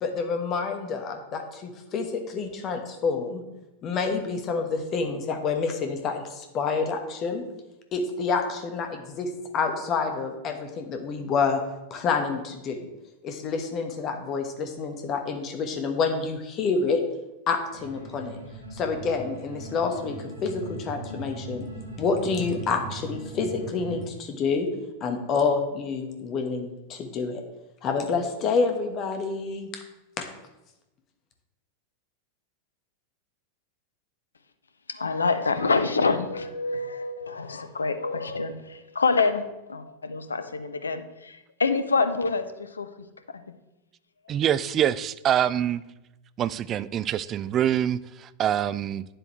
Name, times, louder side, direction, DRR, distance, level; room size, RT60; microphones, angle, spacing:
voice 1, 0.0-3.4 3.8-7.4 7.9-11.6 11.9-12.9 13.2-17.0 17.5-18.4 18.7-21.7 22.0-24.7 25.0-27.4 27.8-29.8, left 4 dB, 35° left, 5 dB, 1.2 m, -28 dB
sound 1, 17.7-24.0, right 1 dB, 90° left, 3.0 m, -39 dB
voice 2, 34.9-42.9 43.3-43.4, left 4 dB, 75° left, 10 dB, 0.6 m, -26 dB
voice 3, 44.3-45.9 46.4-49.1, right 10 dB, 30° right, 16 dB, 0.3 m, -25 dB
9.7 x 7.8 x 3.2 m, 0.97 s
figure-of-eight pair, 90°, 0 cm